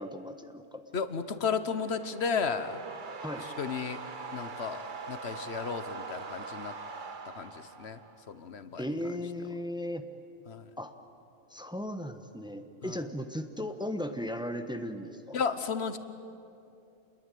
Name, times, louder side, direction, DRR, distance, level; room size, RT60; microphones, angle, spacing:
voice 1, 0.0-0.8 3.2-3.5 8.8-10.0 10.8-10.9 11.5-15.4, left 1 dB, 5° right, 7 dB, 1.2 m, -36 dB
voice 2, 0.9-2.8 3.6-4.0 4.3-4.8 5.1-6.7 7.4-7.5 7.8-8.0 8.3-8.8 10.5-10.6 15.3-16.0, left 6 dB, 75° left, 11 dB, 1.4 m, -33 dB
sound 1, 1.2-8.3, right 4 dB, 50° right, 1.1 m, -43 dB
28.5 x 21.5 x 9.3 m, 2.7 s
omnidirectional pair, 1.1 m